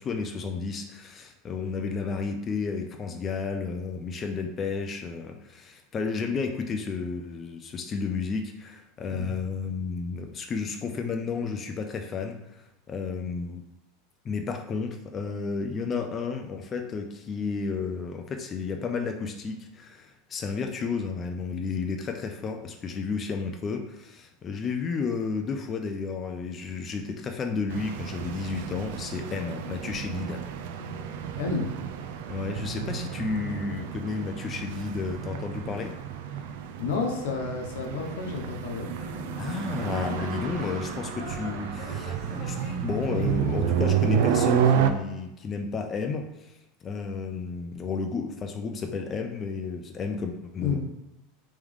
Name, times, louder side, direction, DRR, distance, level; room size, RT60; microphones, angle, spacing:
voice 1, 0.0-13.6 14.2-30.4 32.3-35.9 39.4-50.8, left 5 dB, 25° left, 4 dB, 0.3 m, -32 dB
sound 1, 27.7-44.9, right 8 dB, 70° right, 0.4 m, -30 dB
voice 2, 31.4-31.7 36.8-38.9 50.6-50.8, left 4 dB, 80° left, 2 dB, 0.8 m, -30 dB
sound 2, 38.0-43.4, left 3 dB, 45° left, 0.8 m, -44 dB
3.4 x 3.1 x 3.6 m, 0.93 s
supercardioid pair, 145°, 0 cm